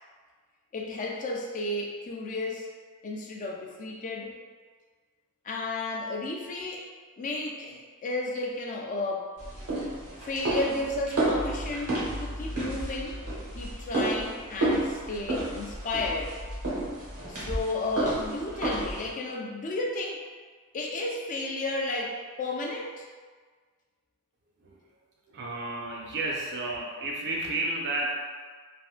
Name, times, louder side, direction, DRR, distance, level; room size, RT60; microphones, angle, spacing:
voice 1, 0.7-2.7 3.0-4.3 5.4-6.9 7.2-9.3 10.2-13.2 13.5-16.4 17.3-20.2 20.7-23.1, left 2 dB, 35° left, 0 dB, 0.4 m, -33 dB
sound 1, 9.4-19.1, right 1 dB, 90° right, 1.0 m, -31 dB
voice 2, 25.3-28.2, right 2 dB, 55° right, -2 dB, 0.5 m, -32 dB
3.4 x 2.1 x 2.4 m, 1.5 s
head